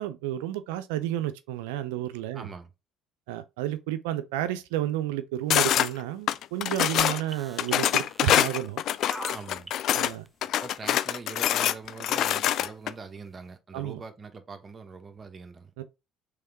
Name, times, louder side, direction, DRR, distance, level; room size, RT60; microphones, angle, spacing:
voice 1, 0.0-2.5 3.3-8.8 9.9-10.3 13.7-14.0 15.8-15.9, right 13 dB, 85° right, 0.5 m, -31 dB
voice 2, 2.3-2.7 9.3-9.7 10.4-15.7, right 4 dB, 35° right, 1.0 m, -43 dB
sound 1, 5.5-5.9 6.3-7.2 7.6-10.1 10.4-12.9, left 11 dB, 65° left, 0.3 m, -25 dB
sound 2, 7.3-11.2 11.8-11.9, right 2 dB, 15° right, 0.5 m, -42 dB
3.5 x 3.4 x 4.4 m
hypercardioid pair, 65°, 0 cm